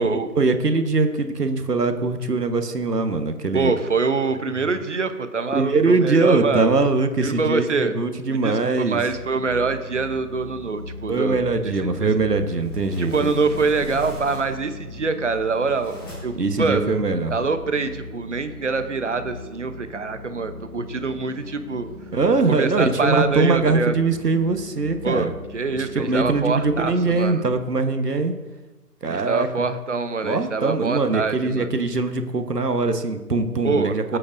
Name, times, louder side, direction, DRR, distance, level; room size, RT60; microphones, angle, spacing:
voice 1, 0.0-3.7 5.5-9.0 11.1-13.3 16.3-17.3 22.1-25.3 25.8-28.3 29.0-29.7 30.2-34.2, right 3 dB, 80° right, 7 dB, 1.3 m, -22 dB
voice 2, 3.5-6.8 7.2-8.0 8.3-11.5 11.8-12.1 13.0-16.9 17.3-21.9 22.5-24.0 25.0-27.4 29.1-31.7 33.6-34.2, right 4 dB, 50° right, 10 dB, 0.9 m, -25 dB
sound 1, 9.0-27.5, left 2 dB, 5° right, 2.5 m, -40 dB
sound 2, 12.3-14.8 15.3-16.5, equal, 15° left, 1.4 m, -39 dB
19.0 x 8.5 x 2.6 m, 1.1 s
figure-of-eight pair, 160°, 47 cm